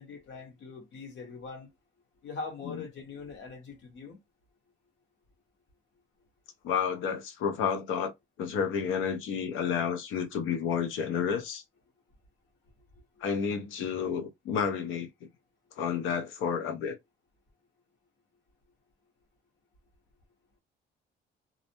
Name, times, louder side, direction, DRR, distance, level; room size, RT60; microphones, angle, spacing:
voice 1, 0.0-1.7 2.2-4.2 12.9-13.3, left 4 dB, 65° left, 1.1 m, -42 dB
voice 2, 6.6-8.1 8.4-11.6 13.2-15.1 15.7-17.0, left 7 dB, 90° left, 0.7 m, -30 dB
2.4 x 2.0 x 2.8 m
cardioid pair, 90°, 20 cm